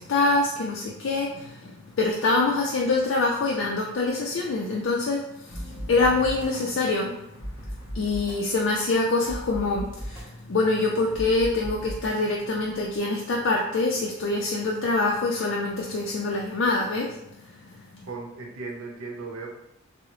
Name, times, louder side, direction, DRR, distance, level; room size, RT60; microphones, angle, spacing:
voice 1, 0.0-7.5 7.9-17.2, left 3 dB, 60° left, -2 dB, 0.4 m, -25 dB
sound 1, 5.5-13.0, equal, 25° right, 0.8 m, -39 dB
voice 2, 18.0-19.5, right 3 dB, 80° right, 0 dB, 0.7 m, -36 dB
3.7 x 2.0 x 3.0 m, 0.83 s
head